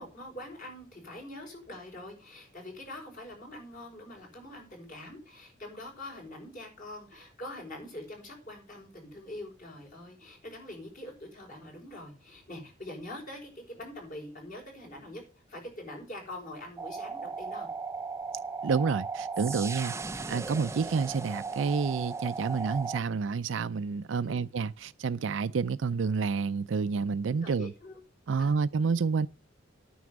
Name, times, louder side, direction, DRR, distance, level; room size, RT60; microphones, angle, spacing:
voice 1, 0.0-15.2 15.5-17.7 24.2-24.5 27.4-28.0 28.4-28.6, left 1 dB, 45° left, 5.6 m, -44 dB
sound 1, 16.8-23.0, right 4 dB, 15° right, 0.4 m, -36 dB
voice 2, 18.6-19.9 20.3-27.7 28.3-29.3, right 5 dB, 75° right, 0.5 m, -29 dB
9.4 x 6.2 x 7.7 m
head